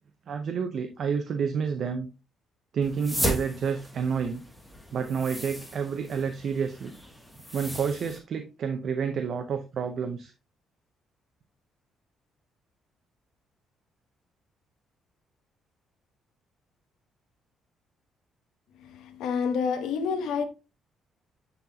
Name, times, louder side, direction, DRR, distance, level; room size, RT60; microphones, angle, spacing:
voice 1, 0.3-2.1 2.7-4.4 4.9-6.9 7.5-10.3, right 6 dB, 50° right, 0.7 m, -29 dB
sound 1, 2.8-8.2, equal, ahead, 1.2 m, -36 dB
voice 2, 18.8-20.4, left 6 dB, 90° left, 1.1 m, -28 dB
9.9 x 4.0 x 2.8 m
cardioid pair, 140°, 0 cm